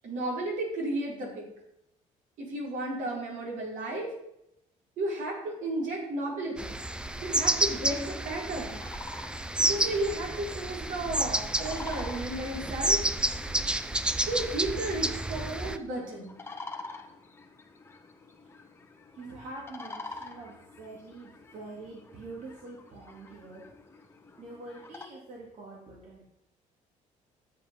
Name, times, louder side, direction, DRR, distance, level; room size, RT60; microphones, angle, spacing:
voice 1, 0.0-1.4 2.4-4.1 5.0-6.8 7.2-8.8 9.7-13.0 14.3-16.3, right 1 dB, 75° right, -3 dB, 5.3 m, -33 dB
sound 1, 6.6-15.8, right 1 dB, 5° right, 0.6 m, -30 dB
sound 2, 8.7-25.1, left 3 dB, 15° left, 1.4 m, -47 dB
voice 2, 19.1-23.6 24.4-26.2, right 2 dB, 55° right, -4 dB, 3.3 m, -45 dB
13.0 x 8.3 x 5.6 m, 0.81 s
cardioid pair, 140°, 14 cm